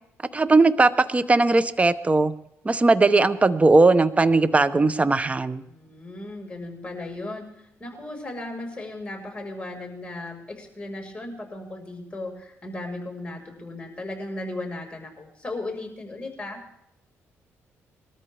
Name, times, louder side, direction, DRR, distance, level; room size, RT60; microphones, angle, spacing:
voice 1, 0.3-2.3 2.6-5.6, right 3 dB, 25° right, 14 dB, 0.9 m, -19 dB
voice 2, 5.7-16.6, left 2 dB, 20° left, 2 dB, 5.0 m, -36 dB
22.0 x 13.5 x 3.5 m, 0.76 s
cardioid pair, 75°, 6 cm